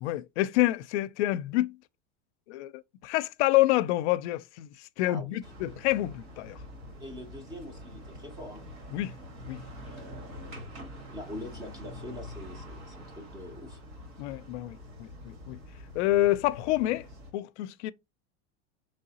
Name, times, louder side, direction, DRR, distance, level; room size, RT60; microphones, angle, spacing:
voice 1, 0.0-1.8 2.5-6.6 8.9-9.1 9.5-9.6 14.2-15.6 15.9-17.1 17.3-17.9, left 16 dB, 75° left, 0.5 m, -28 dB
voice 2, 5.1-5.4 7.0-8.6 9.8-13.8, left 1 dB, 10° right, 0.6 m, -44 dB
sound 1, 5.4-17.3, left 1 dB, 40° right, 1.5 m, -45 dB
4.7 x 3.2 x 2.8 m
supercardioid pair, 165°, 35 cm